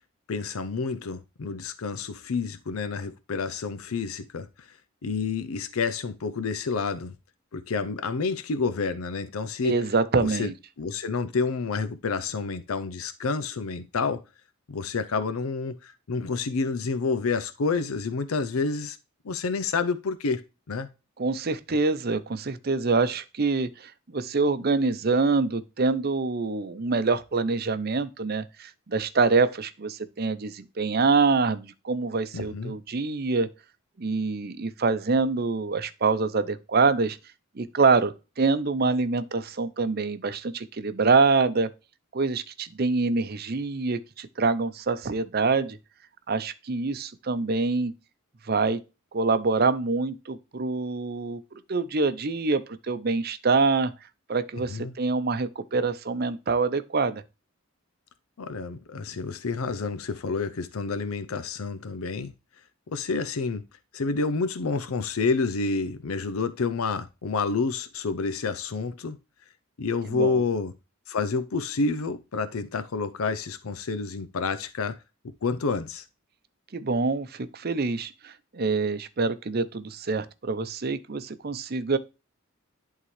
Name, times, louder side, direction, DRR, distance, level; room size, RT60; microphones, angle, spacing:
voice 1, 0.3-4.8 5.0-7.1 7.5-9.8 10.1-10.5 10.8-14.2 14.7-19.0 19.2-20.4 20.7-20.9 32.3-32.8 54.5-54.9 58.4-62.3 62.9-63.6 63.9-69.2 69.8-70.7 71.1-75.0 75.4-76.0, left 4 dB, 90° left, 0.6 m, -29 dB
voice 2, 9.6-10.5 21.2-33.5 34.0-37.2 37.6-41.7 42.1-45.8 46.3-47.9 48.4-48.8 49.1-51.4 51.7-53.9 54.3-57.2 70.1-70.4 76.7-82.0, right 4 dB, 45° right, 0.6 m, -25 dB
11.0 x 3.7 x 3.2 m
head